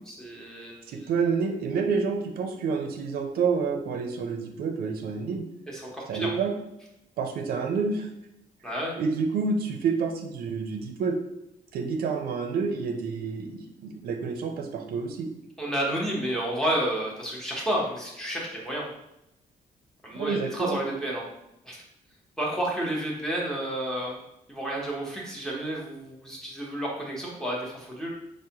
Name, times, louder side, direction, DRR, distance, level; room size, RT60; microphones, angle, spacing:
voice 1, 0.1-0.9 5.7-6.3 8.6-8.9 15.6-18.9 20.0-21.2 21.6-21.8 22.4-24.2 24.5-28.1, right 1 dB, 5° left, -3 dB, 0.7 m, -31 dB
voice 2, 0.9-5.5 6.1-6.5 7.2-8.1 9.0-11.1 11.7-15.3 20.1-20.8, right 5 dB, 90° right, 4 dB, 0.5 m, -28 dB
4.7 x 2.1 x 2.7 m, 0.84 s
cardioid pair, 160°, 15 cm